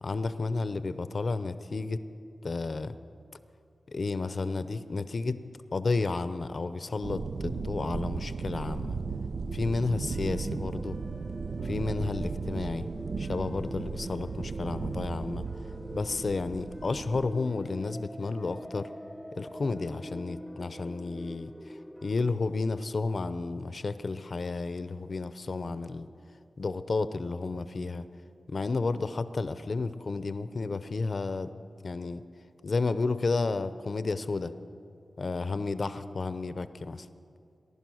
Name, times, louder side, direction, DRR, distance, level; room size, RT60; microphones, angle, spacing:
voice 1, 0.0-2.0 2.4-2.9 3.9-5.4 5.7-9.0 9.5-11.0 11.6-12.9 13.2-15.4 15.9-18.9 19.3-21.5 22.0-26.1 26.6-28.1 28.5-31.5 31.8-32.2 32.6-34.5 35.2-37.1, left 3 dB, 55° left, 12 dB, 0.6 m, -31 dB
sound 1, 7.0-17.3, right 4 dB, 75° right, 0.4 m, -36 dB
sound 2, 9.1-22.2, equal, 5° right, 0.5 m, -45 dB
20.5 x 11.0 x 6.3 m, 2.5 s
wide cardioid pair, 85°, 0 cm